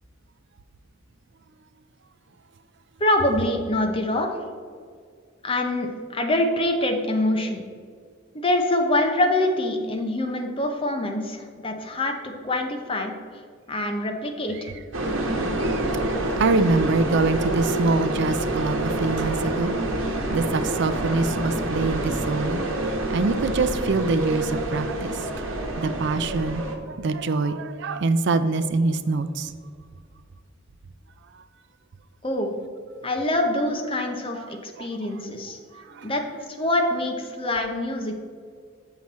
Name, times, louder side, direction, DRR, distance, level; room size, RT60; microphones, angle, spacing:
voice 1, 3.0-4.3 5.4-7.6 8.3-13.1 13.7-14.7 32.2-32.5 33.0-35.6 36.0-36.2 36.6-38.2, left 1 dB, 25° left, 3 dB, 0.8 m, -25 dB
sound 1, 14.9-26.8, right 1 dB, 75° right, 1.1 m, -27 dB
voice 2, 15.6-15.9 16.4-25.2 25.8-29.5 34.3-34.9 35.7-36.1, right 3 dB, 60° right, 12 dB, 0.4 m, -25 dB
7.6 x 5.9 x 4.2 m, 2.1 s
head